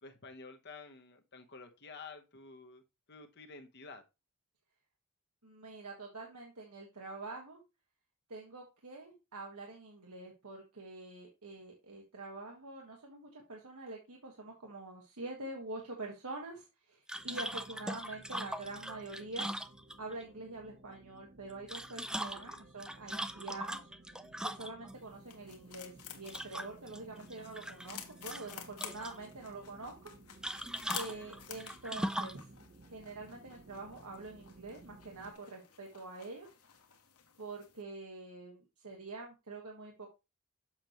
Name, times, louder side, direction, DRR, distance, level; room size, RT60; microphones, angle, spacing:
voice 1, 0.0-2.8 3.1-4.0 22.2-22.6 31.1-31.4, left 4 dB, 50° left, 0.9 m, -51 dB
voice 2, 5.4-7.6 8.3-19.5 20.0-23.9 24.4-30.1 30.9-32.4 32.9-36.5 37.4-40.1, right 2 dB, 85° right, 1.6 m, -46 dB
sound 1, 17.1-20.2 21.5-24.9 26.3-27.0 27.3-28.0 28.3-29.2 30.4-32.4, right 1 dB, 5° right, 0.4 m, -40 dB
sound 2, 17.1-35.3, right 2 dB, 40° right, 0.8 m, -58 dB
sound 3, 24.9-37.8, left 9 dB, 85° left, 1.4 m, -51 dB
7.3 x 6.4 x 3.0 m
head